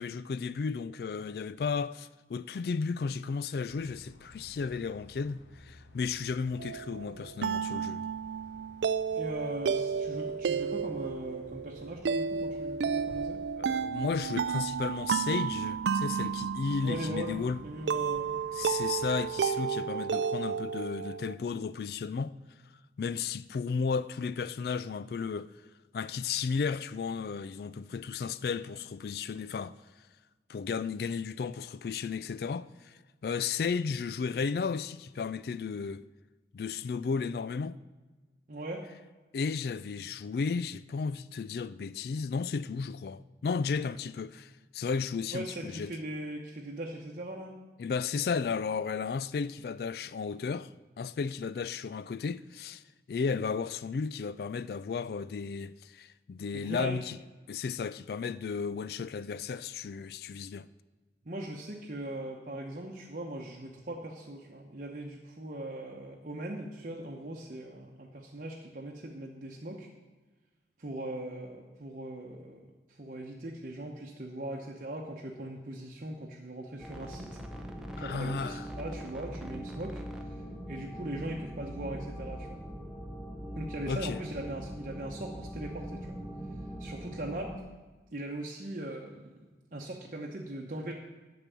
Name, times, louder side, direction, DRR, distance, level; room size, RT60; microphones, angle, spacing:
voice 1, 0.0-8.1 13.6-17.6 18.5-22.3 23.0-25.5 25.9-29.7 30.5-36.0 36.5-37.8 39.3-45.9 47.8-52.8 53.1-57.2 57.5-60.7 78.0-78.7 83.9-84.2, left 5 dB, 55° left, 0.3 m, -34 dB
sound 1, 3.7-19.3, left 1 dB, 80° left, 1.0 m, -55 dB
sound 2, 6.6-21.3, right 6 dB, 75° right, 0.3 m, -32 dB
voice 2, 9.1-13.4 16.8-18.4 38.5-38.8 45.3-47.5 56.5-57.0 61.3-69.9 70.8-77.4 78.0-80.4 80.7-82.6 83.5-86.2 86.8-87.5 88.1-89.4 89.7-90.9, right 1 dB, 45° right, 0.9 m, -40 dB
sound 3, 76.8-87.6, equal, 5° right, 0.7 m, -41 dB
9.0 x 6.1 x 8.3 m
head